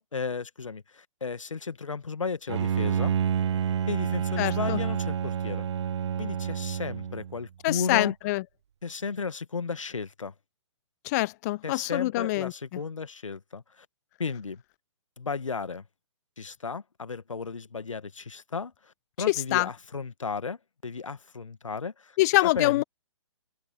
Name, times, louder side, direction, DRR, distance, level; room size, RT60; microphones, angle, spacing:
voice 1, 0.0-3.1 3.9-5.7 6.2-8.1 8.8-10.3 11.6-13.9 14.2-14.6 15.2-15.8 16.4-22.2 22.4-22.8, left 5 dB, 80° left, 1.5 m, -34 dB
Bowed string instrument, 2.5-7.4, right 9 dB, 65° right, 0.6 m, -28 dB
voice 2, 4.4-4.8 7.6-8.4 11.0-12.5 19.3-19.7 22.2-22.8, left 20 dB, 35° left, 0.6 m, -25 dB
open air
figure-of-eight pair, 130°, 16 cm